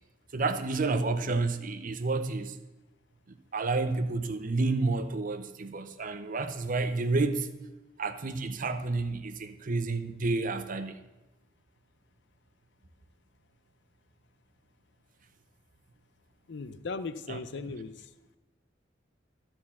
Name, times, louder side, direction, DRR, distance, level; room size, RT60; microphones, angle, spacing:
voice 1, 0.3-2.6 3.5-7.5 8.0-11.0 17.3-17.4, right 3 dB, 45° right, 9 dB, 0.7 m, -30 dB
voice 2, 16.5-18.1, left 4 dB, 65° left, 13 dB, 0.5 m, -38 dB
12.5 x 4.5 x 7.1 m, 1.0 s
head